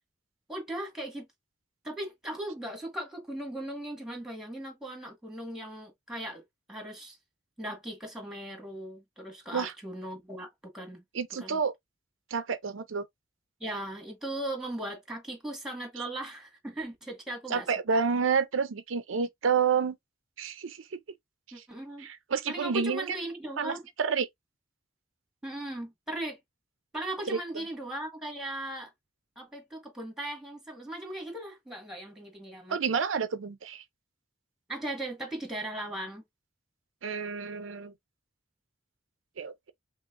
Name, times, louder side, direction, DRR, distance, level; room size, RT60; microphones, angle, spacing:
voice 1, 0.5-1.3 1.8-6.4 6.7-7.2 7.6-11.0 11.4-11.6 13.6-17.7 17.9-18.0 21.5-22.1 22.5-23.9 25.4-26.4 26.9-28.9 29.3-32.8 34.7-36.2, right 1 dB, ahead, 1.7 m, -38 dB
voice 2, 11.1-11.7 12.3-13.1 17.5-20.0 20.4-21.0 21.6-21.7 22.0-23.2 23.6-24.3 27.3-27.4 32.7-33.8 37.0-37.9 39.4-39.7, right 6 dB, 90° right, 0.5 m, -29 dB
5.4 x 2.5 x 2.5 m
head